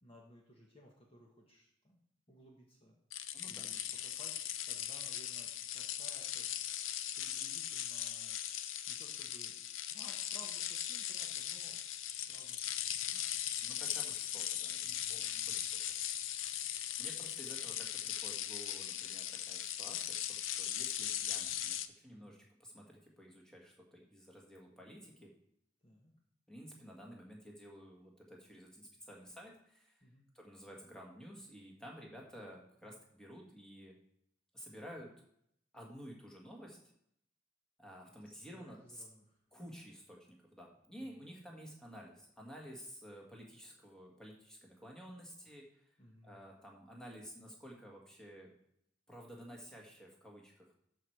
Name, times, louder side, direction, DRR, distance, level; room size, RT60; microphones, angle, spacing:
voice 1, 0.0-2.0 2.3-4.4 4.7-6.5 7.2-9.6 9.9-11.8 12.2-12.7 13.1-13.8 14.8-15.6 22.1-22.5 25.8-26.1 30.0-30.2 32.8-33.0 38.5-39.4 41.0-41.3 46.0-46.4, equal, 30° left, -1 dB, 1.2 m, -60 dB
sound 1, 3.1-21.9, left 11 dB, 85° left, 0.5 m, -39 dB
voice 2, 3.3-3.7 13.6-15.8 17.0-25.3 26.5-30.0 30.3-34.0 34.5-35.1 35.7-36.8 37.8-39.0 39.5-46.0 46.2-48.5 49.1-50.8, equal, 5° left, -1 dB, 1.7 m, -52 dB
13.0 x 4.5 x 4.7 m, 0.72 s
head